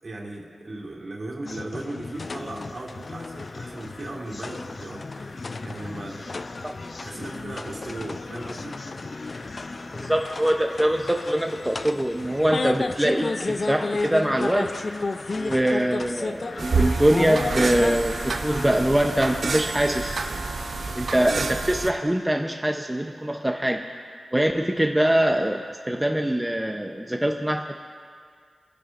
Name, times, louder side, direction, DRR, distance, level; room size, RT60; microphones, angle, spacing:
voice 1, 0.0-6.3 7.0-8.8, right 2 dB, 50° right, -3 dB, 2.6 m, -37 dB
sound 1, 1.4-18.0, left 3 dB, 50° left, 0.4 m, -33 dB
sound 2, 2.1-21.7, left 2 dB, 65° left, 1.1 m, -44 dB
voice 2, 9.9-14.7 15.3-20.2 21.0-23.8 24.3-27.8, right 1 dB, 10° right, 3 dB, 0.7 m, -23 dB
sound 3, 16.6-21.9, right 4 dB, 70° right, 0.7 m, -28 dB
27.5 x 10.5 x 2.5 m, 2.1 s
cardioid pair, 55°, 0 cm